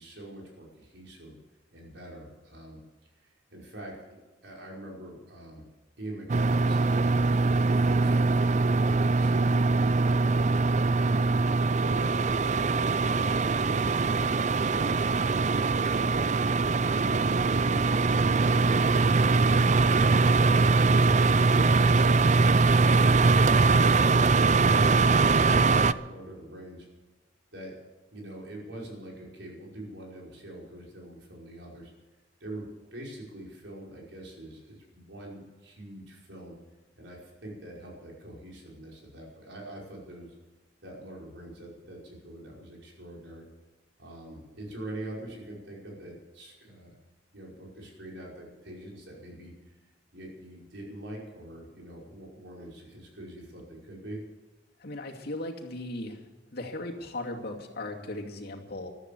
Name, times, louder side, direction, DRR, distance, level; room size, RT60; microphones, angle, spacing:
voice 1, 0.0-1.3 1.7-2.8 3.2-5.6 6.0-7.2 7.6-10.5 11.0-16.2 24.7-26.9 27.5-27.8 28.1-31.9 32.4-36.6 37.0-40.3 40.8-43.5 44.0-47.0 47.3-49.7 50.1-54.2, right 1 dB, 80° right, -2 dB, 5.5 m, -44 dB
sound 1, 6.3-25.9, right 3 dB, 40° right, 0.5 m, -22 dB
voice 2, 54.8-58.9, left 2 dB, 60° left, 0 dB, 2.6 m, -37 dB
14.5 x 13.0 x 6.9 m, 1.2 s
head